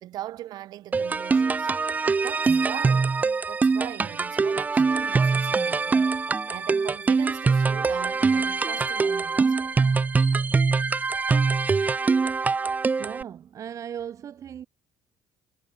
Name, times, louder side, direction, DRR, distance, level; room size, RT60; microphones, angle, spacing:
voice 1, 0.0-1.7 2.2-3.1 3.5-6.0 6.5-9.8, right 14 dB, 70° right, 1.6 m, -40 dB
sound 1, 0.9-13.2, right 4 dB, 25° right, 0.4 m, -23 dB
voice 2, 13.0-14.7, right 9 dB, 50° right, 0.9 m, -37 dB
cardioid pair, 100°, 7 cm